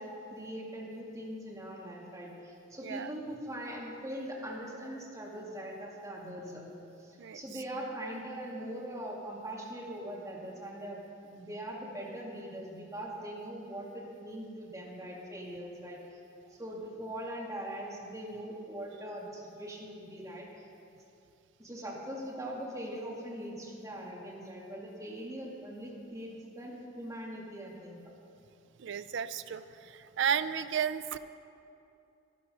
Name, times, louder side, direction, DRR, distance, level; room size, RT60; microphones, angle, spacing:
voice 1, 0.0-6.6 7.0-16.0 16.6-20.5 21.6-28.0, right 1 dB, 15° right, -3 dB, 2.2 m, -41 dB
voice 2, 28.8-31.2, right 8 dB, 65° right, 12 dB, 0.4 m, -33 dB
11.5 x 11.5 x 5.5 m, 2.6 s
head